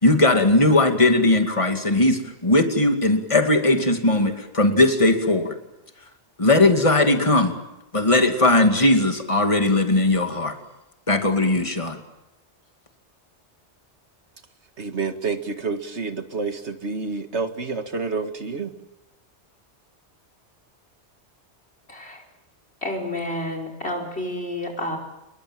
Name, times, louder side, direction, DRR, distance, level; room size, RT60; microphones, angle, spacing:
voice 1, 0.0-5.5 6.4-7.5 7.9-10.6 11.1-12.0, left 2 dB, 25° left, 2.5 m, -19 dB
voice 2, 14.8-18.7, right 4 dB, 75° right, 2.1 m, -28 dB
voice 3, 21.9-22.2 22.8-25.0, left 1 dB, 65° left, 5.6 m, -30 dB
27.5 x 22.0 x 7.6 m
omnidirectional pair, 1.2 m